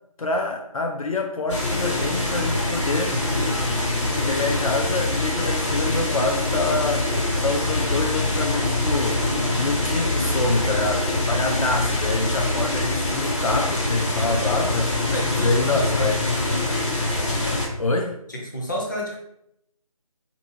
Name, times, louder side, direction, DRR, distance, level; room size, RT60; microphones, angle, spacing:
voice 1, 0.2-3.2 4.2-7.1 7.4-9.3 9.5-14.9 15.4-16.2 17.8-18.2, left 3 dB, 65° left, 2 dB, 0.4 m, -26 dB
sound 1, 1.5-17.7, left 2 dB, 50° left, 1.1 m, -24 dB
voice 2, 15.1-16.1 18.3-19.2, equal, 30° left, -1 dB, 0.6 m, -30 dB
3.5 x 2.7 x 2.6 m, 0.77 s
figure-of-eight pair, 165°, 19 cm